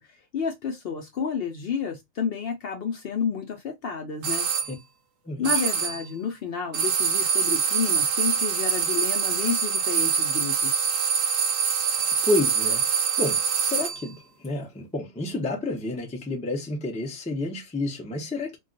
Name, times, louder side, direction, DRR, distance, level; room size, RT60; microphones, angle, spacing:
voice 1, 0.3-4.5 5.4-10.8, left 6 dB, 60° left, 0.6 m, -30 dB
sound 1, 4.2-4.7 5.4-6.1 6.7-14.1, right 6 dB, 90° right, 1.0 m, -24 dB
voice 2, 12.2-12.8 13.2-18.6, left 2 dB, 10° left, 0.3 m, -29 dB
2.3 x 2.3 x 3.8 m
omnidirectional pair, 1.3 m